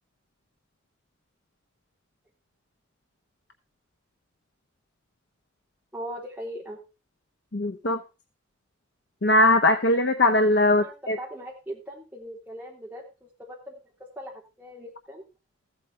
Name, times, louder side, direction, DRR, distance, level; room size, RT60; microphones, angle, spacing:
voice 1, 5.9-6.8 10.7-15.2, equal, 10° right, -3 dB, 3.5 m, -40 dB
voice 2, 7.5-8.0 9.2-11.2, left 2 dB, 60° left, 7 dB, 0.8 m, -20 dB
15.0 x 8.2 x 4.3 m, 0.29 s
head